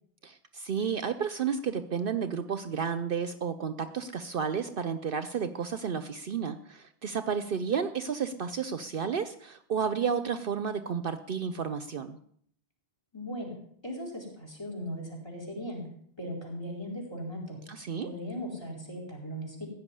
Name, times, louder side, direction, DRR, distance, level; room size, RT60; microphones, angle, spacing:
voice 1, 0.2-12.2 17.7-18.1, right 6 dB, 60° right, 11 dB, 0.8 m, -32 dB
voice 2, 13.1-13.5 13.8-15.8 16.2-17.6 18.0-19.7, equal, 25° left, -1 dB, 4.4 m, -38 dB
15.5 x 5.9 x 9.8 m, 0.65 s
omnidirectional pair, 1.1 m